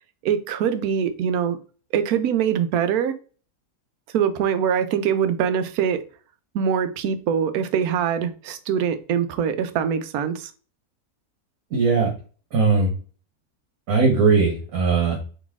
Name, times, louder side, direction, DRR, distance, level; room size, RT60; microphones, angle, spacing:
voice 1, 0.2-1.6 1.9-3.2 4.1-6.0 6.5-10.5, right 8 dB, 85° right, 1.1 m, -23 dB
voice 2, 11.7-12.1 12.5-12.9 13.9-15.2, right 4 dB, 70° right, 1.6 m, -19 dB
4.0 x 3.1 x 3.5 m
omnidirectional pair, 1.5 m